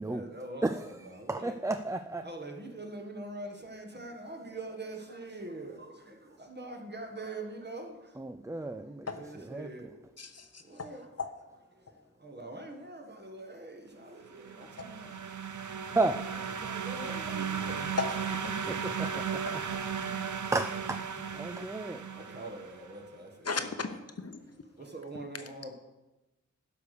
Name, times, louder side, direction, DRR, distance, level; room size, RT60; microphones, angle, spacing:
voice 1, 0.0-1.6 2.2-8.2 9.0-10.0 10.6-11.1 11.7-11.8 12.2-15.2 15.5-15.7 16.6-18.1 18.4-18.8 22.1-23.9 24.8-25.7, right 2 dB, 35° right, 3 dB, 1.6 m, -44 dB
voice 2, 0.6-2.3 8.2-9.1 9.4-9.7 15.9-16.3 18.7-19.6 20.5-22.0, right 2 dB, 10° right, 9 dB, 0.3 m, -33 dB
voice 3, 10.2-10.9 11.2-11.3 18.0-18.5 23.4-24.4, left 4 dB, 55° left, 8 dB, 0.8 m, -35 dB
sound 1, 14.3-22.9, right 6 dB, 80° right, 0.7 m, -36 dB
11.5 x 5.0 x 6.7 m, 1.1 s
wide cardioid pair, 80°, 30 cm